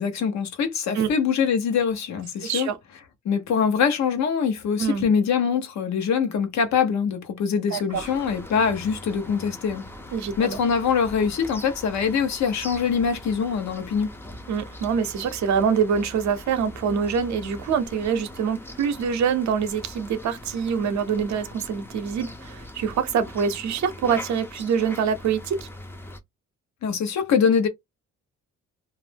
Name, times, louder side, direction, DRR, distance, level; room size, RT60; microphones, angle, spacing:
voice 1, 0.0-2.7 3.2-9.9 10.4-14.1 26.8-27.7, left 6 dB, 65° left, 0.9 m, -23 dB
voice 2, 2.4-2.8 4.8-5.1 7.7-8.1 10.1-10.6 14.5-25.7, right 7 dB, 65° right, 0.7 m, -25 dB
sound 1, 7.9-26.2, left 1 dB, 10° left, 0.5 m, -41 dB
2.5 x 2.0 x 3.3 m
cardioid pair, 90°, 30 cm